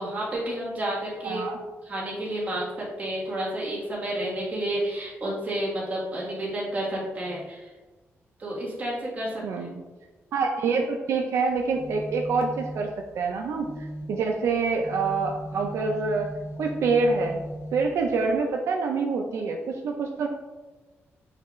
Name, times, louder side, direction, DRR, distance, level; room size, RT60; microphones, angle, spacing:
voice 1, 0.0-1.5 1.8-2.7 3.0-7.7 8.4-9.7, right 1 dB, 30° right, -5 dB, 1.4 m, -30 dB
voice 2, 1.2-1.6 9.4-9.8 10.3-16.3 16.6-17.4 17.7-20.3, right 4 dB, 75° right, 2 dB, 0.4 m, -26 dB
sound 1, 11.5-18.4, equal, 60° left, 0.9 m, -39 dB
6.4 x 2.4 x 3.0 m, 1.2 s
wide cardioid pair, 160°, 5 cm